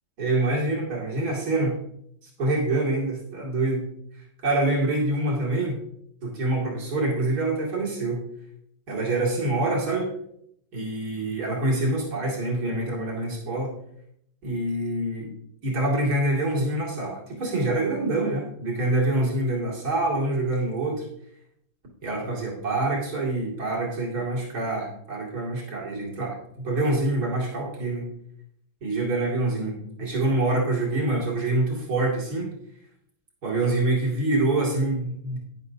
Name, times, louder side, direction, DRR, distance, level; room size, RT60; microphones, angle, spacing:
voice 1, 0.2-1.7 2.4-3.8 4.4-5.8 6.2-8.2 8.9-10.1 10.7-13.7 14.4-15.3 15.6-21.1 22.0-28.1 28.8-32.5 33.4-35.4, right 2 dB, 60° right, -3 dB, 3.1 m, -26 dB
11.5 x 10.0 x 2.8 m, 0.71 s
omnidirectional pair, 1.9 m